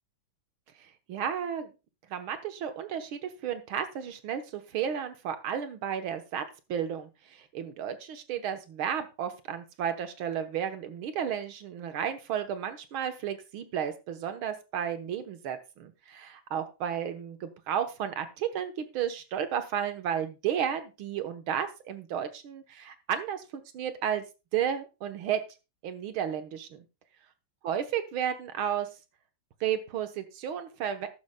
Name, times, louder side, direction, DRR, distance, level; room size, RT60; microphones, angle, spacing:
voice 1, 0.8-1.7 2.1-24.2 24.5-25.4 25.8-26.8 27.6-28.9 29.6-31.1, right 9 dB, 85° right, 9 dB, 2.0 m, -33 dB
13.0 x 12.0 x 2.3 m, 0.27 s
omnidirectional pair, 2.2 m